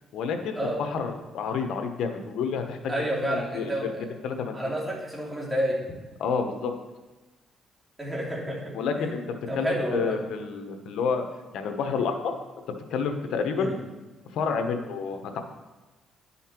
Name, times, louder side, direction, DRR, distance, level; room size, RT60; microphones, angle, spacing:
voice 1, 0.1-2.9 3.2-3.9 4.2-4.6 6.2-6.7 8.7-9.2 9.5-11.3 11.5-12.3 12.9-13.7 14.3-15.4, left 5 dB, 80° left, 6 dB, 1.0 m, -29 dB
voice 2, 2.9-4.0 4.5-5.8 8.0-9.1 9.5-10.2 13.6-13.7, right 1 dB, 15° right, -4 dB, 2.9 m, -29 dB
10.5 x 5.6 x 4.4 m, 1.2 s
cardioid pair, 90°, 0 cm